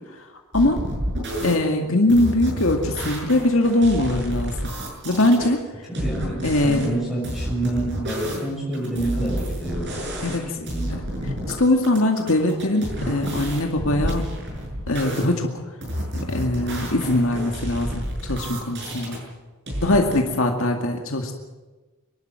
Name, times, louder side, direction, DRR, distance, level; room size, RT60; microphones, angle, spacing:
sound 1, 0.5-1.5 2.1-5.5 5.9-6.9 7.2-10.4 10.7-11.5 11.8-15.3 15.8-19.2 19.7-20.2, equal, 50° right, 6.8 m, -30 dB
voice 1, 1.4-4.7 5.0-5.6 6.4-6.9 10.2-10.4 11.6-14.3 14.9-15.5 16.3-19.2 19.8-21.3, left 1 dB, 65° left, 2 dB, 2.2 m, -21 dB
voice 2, 6.0-11.0 20.1-20.3, right 1 dB, ahead, -4 dB, 6.6 m, -29 dB
25.0 x 12.0 x 9.4 m, 1.2 s
head